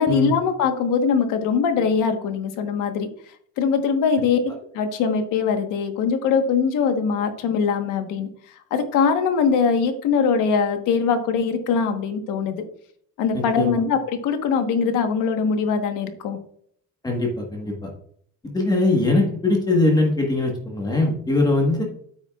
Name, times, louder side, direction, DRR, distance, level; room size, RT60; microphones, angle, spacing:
voice 1, 0.0-3.1 3.6-8.3 8.7-12.6 13.2-16.4, left 6 dB, 70° left, 7 dB, 1.3 m, -22 dB
voice 2, 17.0-17.9 18.5-21.8, left 2 dB, 10° left, 0 dB, 1.3 m, -21 dB
8.9 x 8.7 x 2.4 m, 0.64 s
cardioid pair, 175°, 33 cm